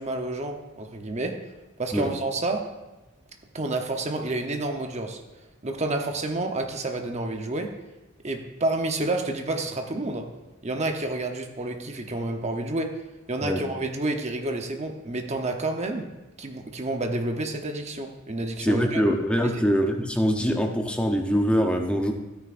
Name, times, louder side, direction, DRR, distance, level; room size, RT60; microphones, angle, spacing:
voice 1, 0.0-1.4 1.8-2.6 3.5-5.2 5.6-7.7 8.2-10.2 10.6-12.9 13.3-16.1 16.4-19.0 19.4-19.6, right 2 dB, 35° right, 4 dB, 0.9 m, -29 dB
voice 2, 18.6-22.1, equal, 5° left, 3 dB, 0.7 m, -23 dB
13.0 x 9.4 x 2.6 m, 1.1 s
head